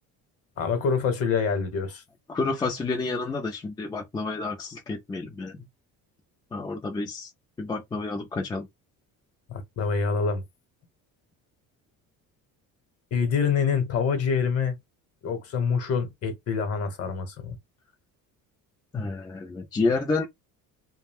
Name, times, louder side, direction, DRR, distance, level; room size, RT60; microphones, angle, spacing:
voice 1, 0.6-2.0 9.5-10.4 13.1-14.8 15.2-17.6, left 6 dB, 40° left, 0.9 m, -26 dB
voice 2, 2.3-5.7 6.5-7.3 7.6-8.7 18.9-20.3, left 3 dB, 10° left, 0.3 m, -29 dB
2.4 x 2.1 x 3.3 m
cardioid pair, 165°, 35 cm